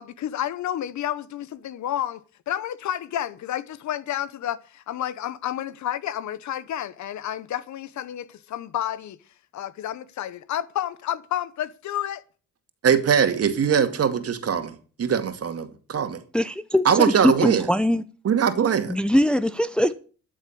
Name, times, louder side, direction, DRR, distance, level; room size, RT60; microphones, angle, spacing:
voice 1, 0.0-9.2 9.5-12.2, left 11 dB, 70° left, 1.0 m, -30 dB
voice 2, 12.8-16.2 16.8-17.7 18.2-19.0, right 7 dB, 50° right, 2.3 m, -21 dB
voice 3, 16.3-18.0 18.9-19.9, left 1 dB, 5° left, 0.7 m, -21 dB
13.0 x 7.2 x 8.6 m
cardioid pair, 90°, 30 cm